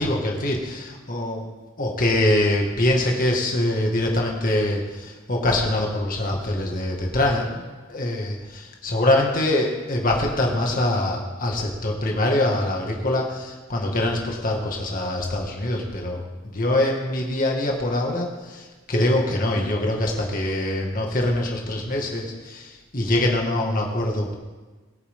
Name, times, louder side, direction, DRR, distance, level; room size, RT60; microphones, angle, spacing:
voice 1, 0.0-1.4 1.8-16.2 16.5-24.3, left 1 dB, 45° left, 0 dB, 2.1 m, -24 dB
22.0 x 8.6 x 3.8 m, 1.3 s
head